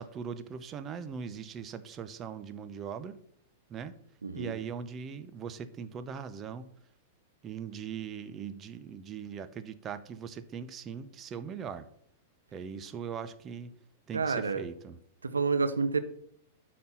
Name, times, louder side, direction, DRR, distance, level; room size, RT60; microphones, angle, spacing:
voice 1, 0.0-3.2 3.7-3.9 4.3-6.7 7.4-11.9 12.5-13.7 14.1-15.0, right 7 dB, 30° right, 12 dB, 0.8 m, -40 dB
voice 2, 4.2-4.6 14.1-14.6 15.2-16.0, right 4 dB, 85° right, 10 dB, 0.9 m, -29 dB
12.0 x 4.3 x 5.7 m, 0.69 s
figure-of-eight pair, 100°, 0 cm